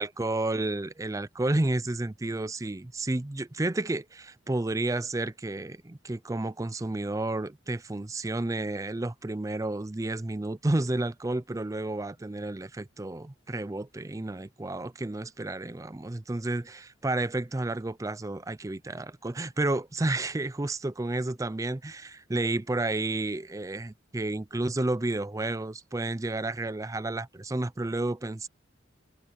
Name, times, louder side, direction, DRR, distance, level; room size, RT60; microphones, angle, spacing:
voice 1, 0.0-28.5, right 2 dB, 15° right, 0.5 m, -31 dB
head